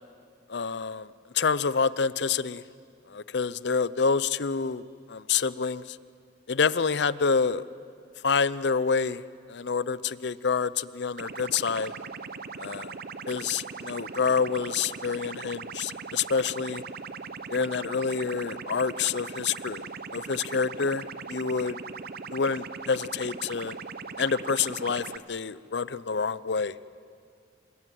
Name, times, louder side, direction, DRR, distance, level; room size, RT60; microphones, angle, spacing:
voice 1, 0.5-1.1 1.3-2.6 3.1-6.0 6.5-7.6 8.2-9.2 9.5-11.9 12.6-13.0 13.3-16.8 17.5-19.8 20.1-21.8 22.3-23.8 24.2-26.7, left 5 dB, 65° left, 17 dB, 0.6 m, -27 dB
sound 1, 11.2-25.2, right 5 dB, 55° right, 0.8 m, -40 dB
27.0 x 21.0 x 9.3 m, 2.2 s
head